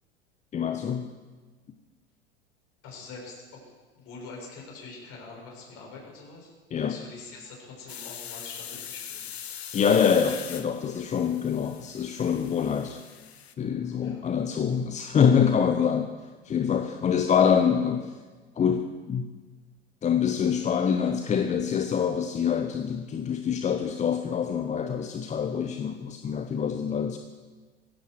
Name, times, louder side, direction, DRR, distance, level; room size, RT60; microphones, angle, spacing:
voice 1, 0.5-1.1 6.7-7.0 9.7-13.0 13.6-16.1 16.4-18.1 18.6-19.3 20.0-27.2, left 7 dB, 20° left, 7 dB, 0.9 m, -25 dB
voice 2, 2.8-3.6 3.9-6.5 6.8-9.2 14.0-14.2, left 3 dB, 45° left, -2 dB, 6.6 m, -44 dB
sound 1, 7.9-13.5, left 9 dB, 75° left, 1.1 m, -41 dB
18.5 x 15.5 x 4.7 m, 1.3 s
figure-of-eight pair, 80°, 32 cm